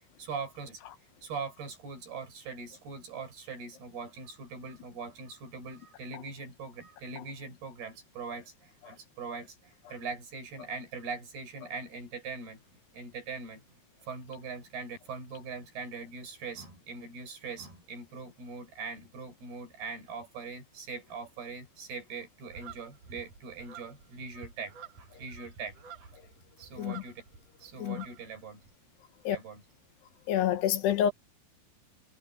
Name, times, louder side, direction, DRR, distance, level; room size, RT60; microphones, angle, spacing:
voice 1, 0.2-0.8 1.2-12.6 12.9-13.6 14.0-26.1 26.6-27.2 27.6-28.6 29.2-29.6, right 4 dB, 60° right, 7.9 m, -41 dB
sound 1, 22.5-27.5 27.7-28.7, right 7 dB, 45° right, 8.6 m, -50 dB
voice 2, 30.3-31.1, left 10 dB, 75° left, 3.0 m, -27 dB
omnidirectional pair, 5.2 m